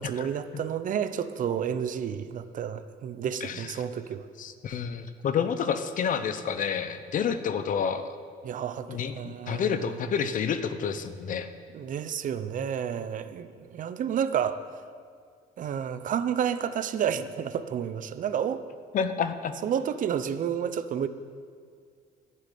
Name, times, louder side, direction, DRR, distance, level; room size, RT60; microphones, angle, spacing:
voice 1, 0.0-4.2 8.4-10.0 11.7-14.6 15.6-18.6 19.6-21.1, right 8 dB, 50° right, 12 dB, 0.7 m, -30 dB
voice 2, 3.4-3.8 4.4-8.2 8.9-11.5 18.9-19.5, left 7 dB, 50° left, 11 dB, 0.9 m, -29 dB
11.5 x 7.7 x 9.3 m, 2.1 s
cardioid pair, 110°, 17 cm